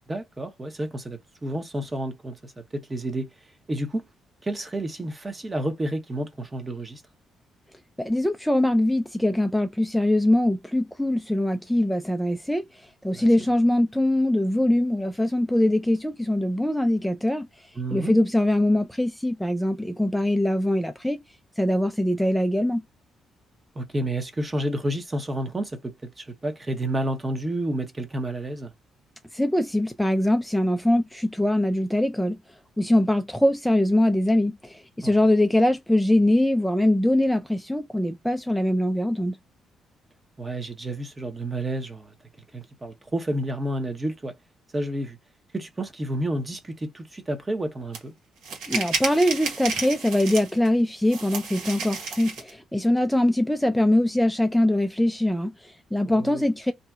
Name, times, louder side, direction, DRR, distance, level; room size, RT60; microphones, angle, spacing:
voice 1, 0.1-3.3 3.7-4.0 4.4-7.0 13.1-13.3 17.8-18.1 23.8-28.7 35.0-35.1 40.4-42.1 42.5-44.3 44.7-45.2 45.5-48.1 56.1-56.4, right 1 dB, 25° right, 0.8 m, -30 dB
voice 2, 8.0-21.2 21.6-22.8 29.3-32.4 32.8-39.4 48.7-56.7, left 1 dB, 5° left, 0.3 m, -22 dB
sound 1, 47.9-48.0 48.4-50.7 51.1-52.5, right 4 dB, 85° right, 1.2 m, -31 dB
2.7 x 2.2 x 3.4 m
cardioid pair, 90°, 0 cm